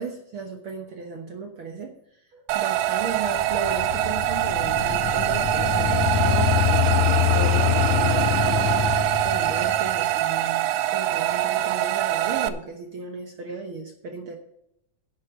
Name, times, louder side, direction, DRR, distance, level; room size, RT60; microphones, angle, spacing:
voice 1, 0.0-14.3, right 4 dB, 60° right, 2 dB, 1.4 m, -35 dB
sound 1, 2.5-12.5, right 14 dB, 85° right, 2.2 m, -24 dB
sound 2, 3.0-10.0, left 10 dB, 80° left, 1.7 m, -25 dB
10.5 x 8.6 x 5.1 m, 0.77 s
omnidirectional pair, 3.8 m